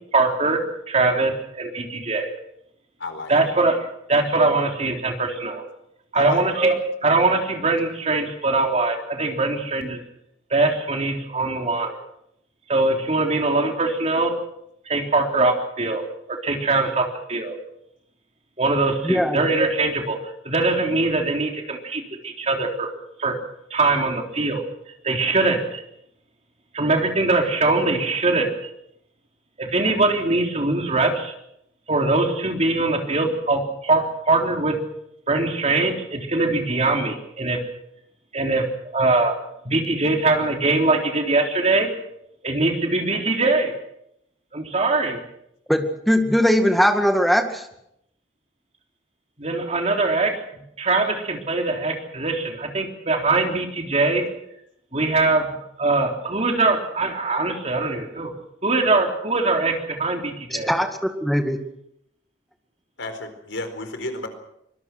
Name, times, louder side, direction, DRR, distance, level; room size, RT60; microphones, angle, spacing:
voice 1, 0.1-2.3 3.3-5.6 6.1-10.0 10.5-12.0 12.7-14.3 14.9-16.0 16.3-17.6 18.6-22.9 23.2-23.4 23.7-24.6 25.0-25.8 26.7-28.7 29.6-31.3 31.9-34.8 35.3-37.6 38.3-38.7 38.9-39.4 39.6-41.9 42.4-43.7 44.5-45.2 49.4-50.4 50.8-54.3 54.9-58.3 58.6-60.7, right 3 dB, 35° right, 2 dB, 3.7 m, -22 dB
voice 2, 3.0-3.3 6.1-6.4 63.0-64.3, left 2 dB, 80° left, 7 dB, 4.4 m, -32 dB
voice 3, 19.0-19.4 45.7-47.7 60.5-60.9 61.2-61.6, equal, ahead, 5 dB, 2.1 m, -20 dB
24.5 x 21.5 x 6.2 m, 0.78 s
head